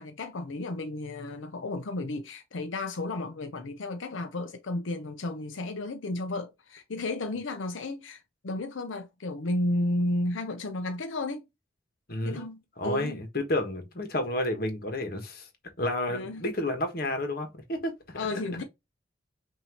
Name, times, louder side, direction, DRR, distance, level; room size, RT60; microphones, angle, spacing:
voice 1, 0.0-11.5 12.2-13.2 16.1-16.4 18.1-18.6, left 2 dB, 90° left, 0.6 m, -33 dB
voice 2, 12.1-15.5 15.8-18.2, left 1 dB, 50° left, 1.3 m, -31 dB
5.6 x 2.8 x 2.9 m
head